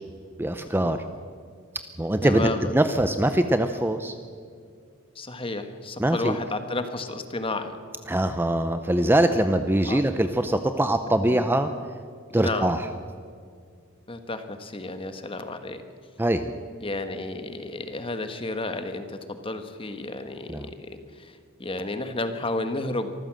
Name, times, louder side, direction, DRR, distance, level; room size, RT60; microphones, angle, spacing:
voice 1, 0.4-1.0 2.0-2.5 2.7-4.2 6.0-6.4 8.1-11.7 12.3-12.8 16.2-16.5 20.5-20.7, right 1 dB, 10° right, 9 dB, 0.6 m, -23 dB
voice 2, 2.2-2.8 5.1-7.8 9.8-10.0 11.3-11.5 12.3-12.8 14.1-15.8 16.8-23.1, left 2 dB, 25° left, 8 dB, 1.4 m, -32 dB
24.5 x 14.5 x 7.6 m, 2.2 s
head